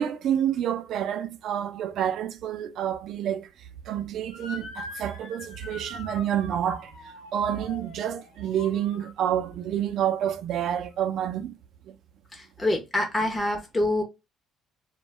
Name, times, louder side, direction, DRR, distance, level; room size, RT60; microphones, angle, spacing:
voice 1, 0.0-3.5 3.9-6.9 7.3-11.5 11.9-12.0, right 10 dB, 70° right, 0.3 m, -28 dB
Motor vehicle (road) / Siren, 4.3-9.6, left 3 dB, 85° left, 0.7 m, -43 dB
voice 2, 12.3-14.0, left 1 dB, 20° left, 0.6 m, -26 dB
2.1 x 2.0 x 3.2 m
supercardioid pair, 75°, 0 cm